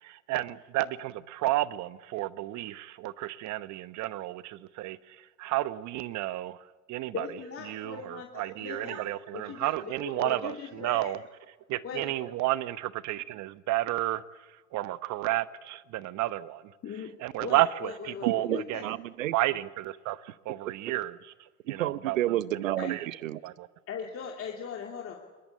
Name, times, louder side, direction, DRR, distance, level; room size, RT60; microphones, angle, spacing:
voice 1, 0.0-7.3 7.7-11.2 11.7-14.2 14.7-16.7 17.2-19.0 19.3-22.4 22.9-23.1 23.4-23.7, right 16 dB, 45° right, 15 dB, 1.1 m, -32 dB
voice 2, 7.1-9.1 9.3-11.1 11.8-12.1 16.8-17.1 17.4-18.9 22.8-22.9 23.9-25.2, left 7 dB, 35° left, 0 dB, 2.8 m, -39 dB
voice 3, 18.4-19.3 21.7-23.4, right 13 dB, 80° right, 18 dB, 0.9 m, -30 dB
22.5 x 21.0 x 8.6 m, 1.3 s
hypercardioid pair, 85°, 39 cm